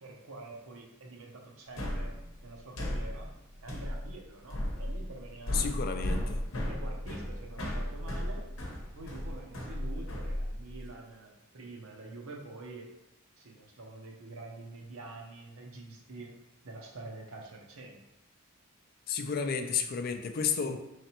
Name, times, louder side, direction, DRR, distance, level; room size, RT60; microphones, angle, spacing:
voice 1, 0.0-2.1 2.4-3.3 3.6-6.4 6.6-8.5 8.8-12.9 13.4-16.3 16.6-18.0, right 2 dB, 80° right, -1 dB, 0.8 m, -46 dB
sound 1, 1.8-10.9, equal, 70° left, 0.8 m, -35 dB
voice 2, 5.5-6.4 19.1-20.8, left 6 dB, 45° left, 6 dB, 0.3 m, -32 dB
4.0 x 3.2 x 2.9 m, 0.90 s
head